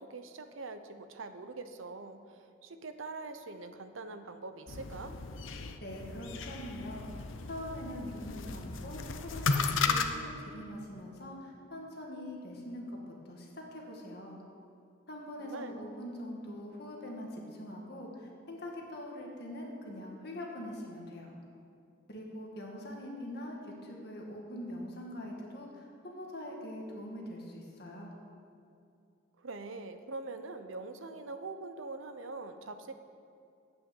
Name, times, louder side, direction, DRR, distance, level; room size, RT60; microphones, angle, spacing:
voice 1, 0.0-2.2 2.6-5.2 15.4-15.8 29.4-32.9, right 3 dB, 80° right, 8 dB, 0.8 m, -43 dB
sound 1, 4.7-10.1, left 4 dB, 75° left, 0.8 m, -35 dB
voice 2, 5.8-12.9 13.3-14.4 15.1-21.3 22.1-28.1, left 1 dB, 50° left, -1 dB, 2.0 m, -43 dB
10.5 x 9.1 x 7.1 m, 2.5 s
head